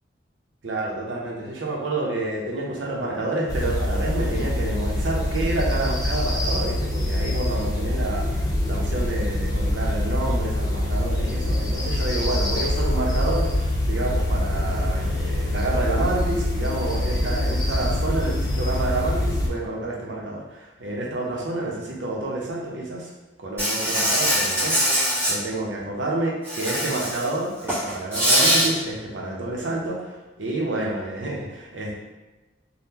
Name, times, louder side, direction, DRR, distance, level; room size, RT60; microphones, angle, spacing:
voice 1, 0.6-23.1 23.4-31.9, right 2 dB, 85° right, -2 dB, 0.7 m, -29 dB
sound 1, 3.5-19.5, left 1 dB, 20° left, 0.6 m, -24 dB
Insect, 23.6-25.3 26.4-27.3 27.6-28.7, equal, 15° right, 1.3 m, -22 dB
3.6 x 2.2 x 2.8 m, 1.1 s
head